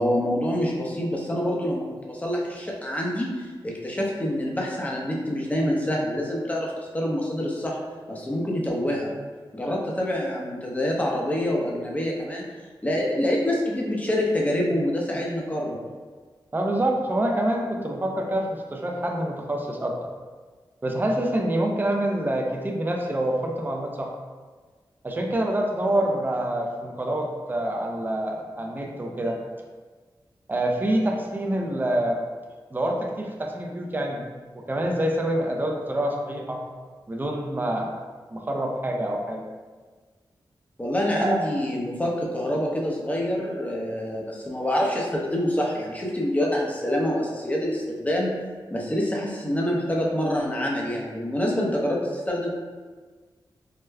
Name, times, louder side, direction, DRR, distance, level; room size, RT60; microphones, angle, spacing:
voice 1, 0.0-3.3 3.6-7.8 8.1-9.1 9.5-12.5 12.8-15.8 40.8-48.3 48.7-52.5, left 1 dB, 15° left, -2 dB, 0.7 m, -26 dB
voice 2, 16.5-20.0 20.8-24.1 25.0-29.4 30.5-32.2 32.7-34.2 34.5-36.6 37.1-37.9 38.3-39.4 41.2-41.4, right 1 dB, 25° right, 1 dB, 0.5 m, -26 dB
4.7 x 2.1 x 2.2 m, 1.4 s
cardioid pair, 60°, 8 cm